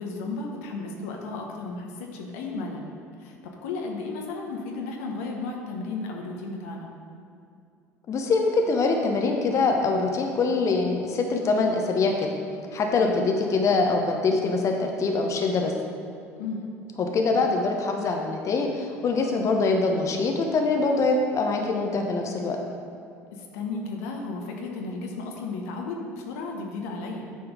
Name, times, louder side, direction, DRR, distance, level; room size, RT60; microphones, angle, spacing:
voice 1, 0.0-3.4 3.6-6.9 13.0-13.2 16.4-16.7 23.4-27.3, left 3 dB, 70° left, 1 dB, 1.0 m, -34 dB
voice 2, 8.1-12.3 12.7-15.7 17.0-22.6, left 3 dB, 40° left, 2 dB, 0.9 m, -24 dB
9.1 x 4.4 x 5.0 m, 2.5 s
hypercardioid pair, 65°, 8 cm